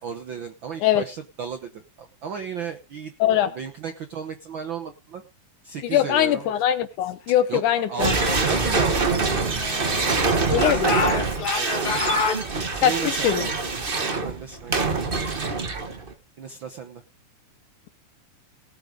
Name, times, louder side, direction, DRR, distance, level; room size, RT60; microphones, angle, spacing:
voice 1, 0.0-5.2 5.6-6.5 7.3-9.6 9.9-10.9 11.5-12.2 12.7-13.5 14.0-14.8 16.4-17.0, right 7 dB, 70° right, 7 dB, 1.1 m, -35 dB
voice 2, 5.9-8.4 10.5-11.2 12.8-13.5, left 11 dB, 75° left, 12 dB, 2.4 m, -22 dB
sound 1, 8.0-16.1, right 4 dB, 45° right, 0.6 m, -24 dB
Speech / Shout, 8.5-10.1 10.5-12.4, left 4 dB, 45° left, 1.5 m, -28 dB
18.5 x 6.6 x 5.1 m, 0.29 s
omnidirectional pair, 3.6 m